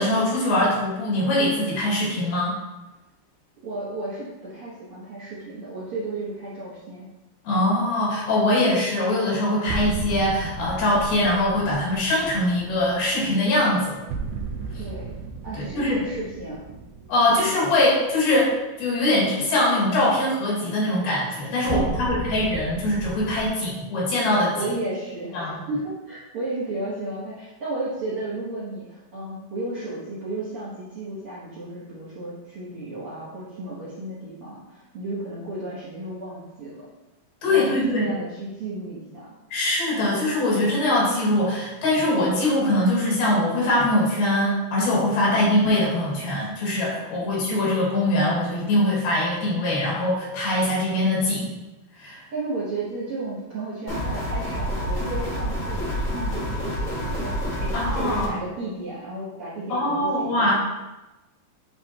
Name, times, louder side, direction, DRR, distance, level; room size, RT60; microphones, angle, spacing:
voice 1, 0.0-2.6 7.5-14.0 15.5-16.0 17.1-24.6 25.3-25.6 37.4-38.1 39.5-51.6 52.0-52.2 57.7-58.3 59.7-60.5, left 1 dB, 80° left, -5 dB, 3.8 m, -22 dB
voice 2, 3.6-7.1 14.8-15.1 15.4-16.6 17.3-17.6 21.6-22.3 24.6-36.8 37.5-39.4 45.2-45.5 47.2-47.6 52.3-60.5, right 2 dB, 60° right, -10 dB, 1.5 m, -33 dB
sound 1, 9.7-18.6 21.7-23.5, right 4 dB, 90° right, 1.7 m, -35 dB
sound 2, 53.9-58.3, equal, 65° left, 0.8 m, -28 dB
9.5 x 3.4 x 2.9 m, 1.0 s
omnidirectional pair, 4.2 m